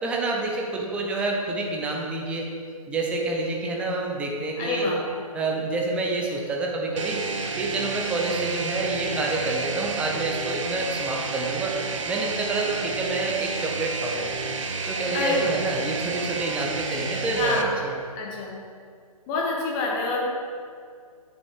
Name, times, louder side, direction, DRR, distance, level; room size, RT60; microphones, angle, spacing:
voice 1, 0.0-2.5 2.9-4.9 5.3-7.2 7.6-11.8 12.1-14.3 14.9-17.9, right 3 dB, 5° right, 0 dB, 0.6 m, -28 dB
voice 2, 4.6-5.0 15.1-15.6 17.4-17.8 18.1-18.6 19.3-20.3, left 3 dB, 20° left, -2 dB, 1.4 m, -27 dB
sound 1, 7.0-17.6, right 4 dB, 55° right, 0.8 m, -31 dB
9.4 x 7.0 x 3.5 m, 2.2 s
figure-of-eight pair, 135°, 19 cm